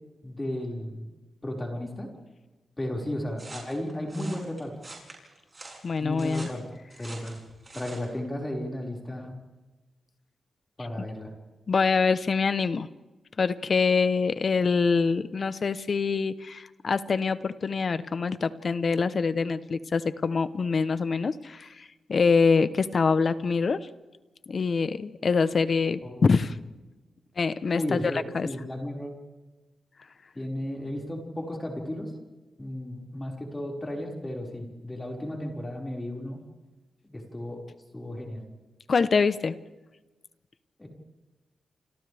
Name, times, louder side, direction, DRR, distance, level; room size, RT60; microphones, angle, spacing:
voice 1, 0.2-1.1 1.4-2.1 2.8-4.7 6.0-6.6 7.0-7.4 7.7-9.3 10.8-11.3 26.0-26.3 27.7-29.2 30.3-32.1 32.6-36.4 37.0-37.6 37.9-38.4 40.8-40.9, left 1 dB, 15° left, -1 dB, 5.3 m, -34 dB
sound 1, 3.4-8.1, right 2 dB, 30° right, 7.8 m, -45 dB
voice 2, 5.8-6.5 11.0-11.1 11.7-12.9 13.4-23.9 24.5-26.6 27.4-28.5 38.9-39.6, left 4 dB, 50° left, 13 dB, 0.9 m, -25 dB
29.0 x 26.5 x 3.5 m, 1.2 s
wide cardioid pair, 105°, 0 cm